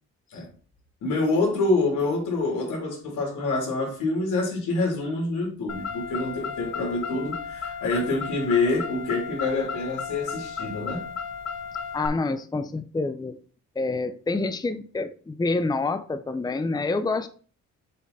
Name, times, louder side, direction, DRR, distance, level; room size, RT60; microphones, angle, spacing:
voice 1, 1.0-11.2, left 3 dB, 85° left, 3.5 m, -26 dB
Car, 5.7-12.1, left 6 dB, 60° left, 1.4 m, -34 dB
voice 2, 11.9-13.4 13.8-17.3, left 3 dB, 15° left, 0.6 m, -27 dB
7.5 x 4.0 x 4.1 m
cardioid pair, 90°, 30 cm